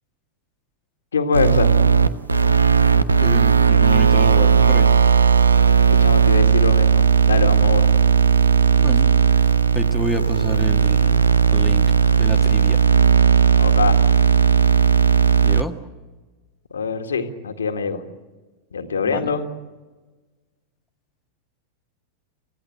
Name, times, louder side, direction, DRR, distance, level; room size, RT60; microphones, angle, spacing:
voice 1, 1.1-1.7 5.9-7.9 13.6-14.0 16.7-18.0 18.7-19.5, left 5 dB, 70° left, 6 dB, 1.9 m, -24 dB
sound 1, 1.3-15.6, right 6 dB, 80° right, 1.0 m, -16 dB
voice 2, 3.2-4.9 8.8-9.1 9.7-11.2 11.5-11.9 12.2-12.8 15.4-15.7 19.0-19.3, equal, ahead, 3 dB, 1.6 m, -29 dB
28.5 x 16.5 x 7.8 m, 1.3 s
figure-of-eight pair, 90°, 0 cm